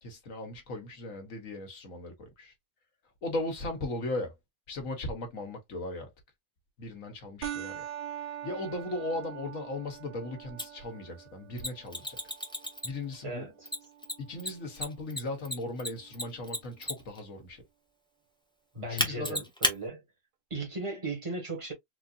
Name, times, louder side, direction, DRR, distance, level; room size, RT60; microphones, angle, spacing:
voice 1, 0.0-2.5 3.2-4.4 4.7-6.1 6.8-7.8 8.4-12.2 12.8-13.5 14.2-17.6 18.9-19.4, left 2 dB, 85° left, 1.6 m, -37 dB
sound 1, 7.4-16.4, right 10 dB, 60° right, 0.7 m, -44 dB
Mechanisms, 10.6-10.7 11.6-13.1 13.7-17.2 19.0-19.8, left 1 dB, 5° left, 0.7 m, -32 dB
voice 2, 13.2-13.7 18.7-20.0 20.5-21.7, right 2 dB, 25° right, 1.5 m, -37 dB
4.1 x 2.7 x 2.4 m
omnidirectional pair, 1.3 m